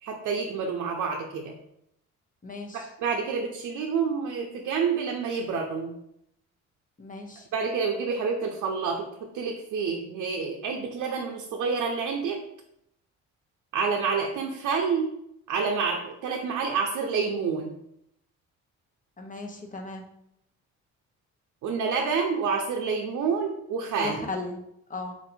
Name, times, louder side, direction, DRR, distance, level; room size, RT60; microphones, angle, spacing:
voice 1, 0.0-1.5 2.7-6.0 7.5-12.4 13.7-15.1 15.5-17.8 21.6-24.2, right 5 dB, 75° right, 1 dB, 0.6 m, -28 dB
voice 2, 2.4-2.9 7.0-7.5 19.2-20.1 24.0-24.6 24.9-25.1, left 3 dB, 25° left, 2 dB, 0.9 m, -36 dB
4.3 x 2.7 x 4.2 m, 0.79 s
cardioid pair, 90°, 30 cm